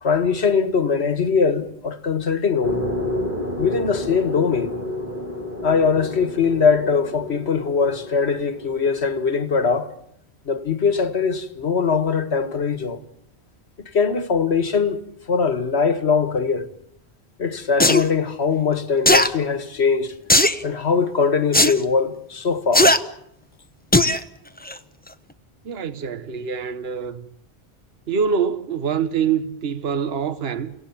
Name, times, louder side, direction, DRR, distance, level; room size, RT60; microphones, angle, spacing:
voice 1, 0.0-2.8 3.6-4.7 5.6-9.9 10.5-13.0 13.9-15.0 15.3-16.7 17.4-20.1 20.6-22.9, left 5 dB, 75° left, 1.9 m, -21 dB
sound 1, 2.6-8.9, left 1 dB, 50° right, 6.0 m, -30 dB
sound 2, 17.8-18.0 19.0-19.3 20.3-20.6 21.5-21.7 22.7-23.0 23.9-24.2 24.7-24.8, left 1 dB, 10° left, 0.9 m, -15 dB
voice 2, 25.6-27.3 28.1-30.7, right 6 dB, 65° right, 1.3 m, -25 dB
29.5 x 17.5 x 7.3 m
omnidirectional pair, 1.1 m